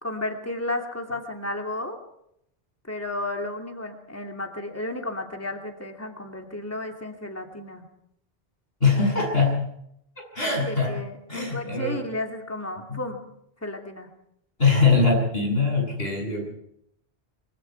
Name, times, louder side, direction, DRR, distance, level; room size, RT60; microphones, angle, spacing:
voice 1, 0.0-2.0 2.9-7.8 10.6-13.3 13.6-14.1, left 1 dB, 15° left, 3 dB, 2.8 m, -33 dB
voice 2, 8.8-9.6 10.3-10.9 11.3-12.0 12.9-13.0 14.6-16.4, left 4 dB, 70° left, 0 dB, 8.2 m, -22 dB
25.0 x 23.5 x 4.7 m, 0.74 s
omnidirectional pair, 1.1 m